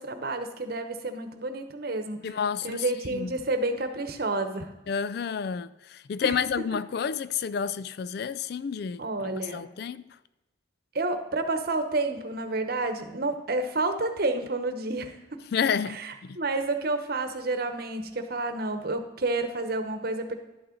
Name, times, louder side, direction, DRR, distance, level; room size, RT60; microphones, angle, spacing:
voice 1, 0.0-2.4 2.6-4.7 6.2-6.3 9.0-9.7 10.9-15.4 15.9-20.3, right 2 dB, 50° right, 1.0 m, -30 dB
voice 2, 2.2-3.3 4.9-10.0 15.5-16.4, left 6 dB, 55° left, 0.3 m, -30 dB
11.5 x 8.6 x 3.9 m
head